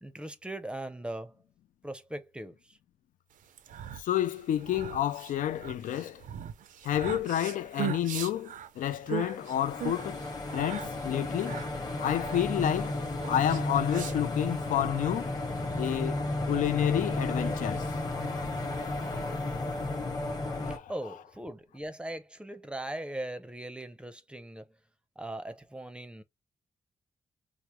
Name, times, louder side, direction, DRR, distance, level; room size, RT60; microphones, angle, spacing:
voice 1, 0.0-1.4 1.8-2.8 20.9-24.7 25.2-26.2, right 1 dB, 10° right, 0.5 m, -39 dB
sound 1, 3.4-14.6, right 10 dB, 85° right, 0.5 m, -40 dB
voice 2, 4.0-6.2 6.8-11.6 12.0-15.3 15.8-16.2 16.5-17.9 20.6-20.9, left 11 dB, 90° left, 0.4 m, -30 dB
sound 2, 9.3-20.8, left 2 dB, 30° left, 1.0 m, -33 dB
4.8 x 2.0 x 2.9 m
wide cardioid pair, 135°, 13 cm